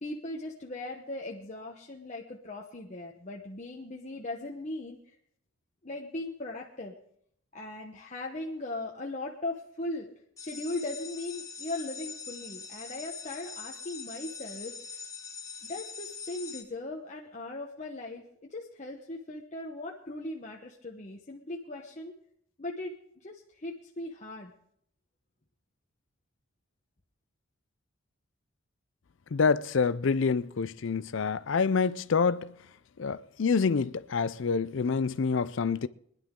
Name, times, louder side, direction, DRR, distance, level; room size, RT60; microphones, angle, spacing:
voice 1, 0.0-5.1 5.8-6.9 7.5-10.1 10.4-14.8 15.7-22.1 22.6-24.5, left 2 dB, 35° left, 1.0 m, -38 dB
sound 1, 10.4-16.6, left 6 dB, 15° left, 1.2 m, -43 dB
voice 2, 29.3-32.5 33.0-35.9, left 5 dB, 60° left, 0.5 m, -27 dB
22.0 x 11.0 x 3.7 m
head